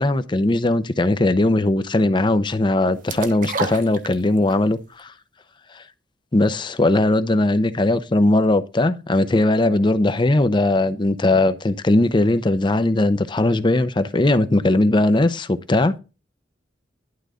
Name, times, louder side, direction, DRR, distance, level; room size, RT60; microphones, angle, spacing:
voice 1, 0.0-5.1 5.8-5.9 6.3-16.0, left 2 dB, 25° left, 0.6 m, -19 dB
sound 1, 3.1-4.6 5.0-5.1, right 4 dB, 50° right, 1.0 m, -29 dB
11.5 x 3.9 x 4.9 m
head